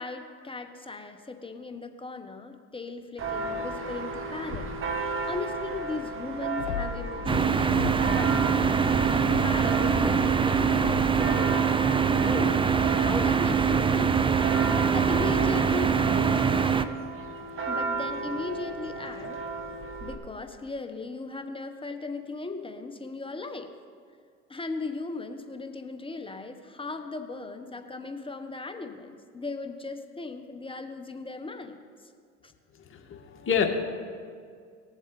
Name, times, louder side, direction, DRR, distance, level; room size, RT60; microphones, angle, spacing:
voice 1, 0.0-4.7 5.3-8.5 8.8-11.8 12.2-12.7 12.9-14.2 14.6-16.1 16.8-16.9 17.7-19.4 20.0-23.7 24.5-31.8 32.4-32.5, left 3 dB, 15° left, 7 dB, 1.1 m, -37 dB
Church bell, 3.2-20.1, right 3 dB, 45° right, 1.8 m, -35 dB
sound 1, 6.6-8.2 8.5-11.3, left 6 dB, 80° left, 1.1 m, -37 dB
sound 2, 7.3-16.8, right 6 dB, 15° right, 0.6 m, -23 dB
voice 2, 32.9-33.6, left 7 dB, 40° left, 3 dB, 1.9 m, -27 dB
19.5 x 7.2 x 4.1 m, 2.2 s
hypercardioid pair, 75°, 30 cm